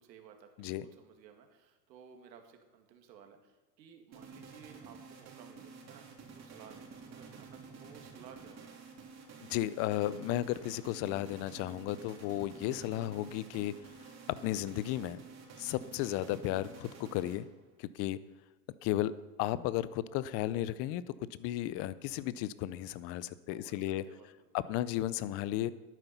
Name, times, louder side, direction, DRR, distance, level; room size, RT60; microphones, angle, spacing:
voice 1, 0.0-8.8 23.5-24.7, right 7 dB, 85° right, 4 dB, 2.2 m, -57 dB
sound 1, 4.1-17.7, right 5 dB, 30° right, 3.2 m, -51 dB
voice 2, 9.5-13.8 14.3-15.2 15.6-17.5 17.8-18.2 18.8-21.0 21.3-24.1 24.5-25.7, left 14 dB, 30° left, 17 dB, 0.4 m, -34 dB
11.5 x 9.2 x 5.8 m, 1.1 s
supercardioid pair, 125°, 50 cm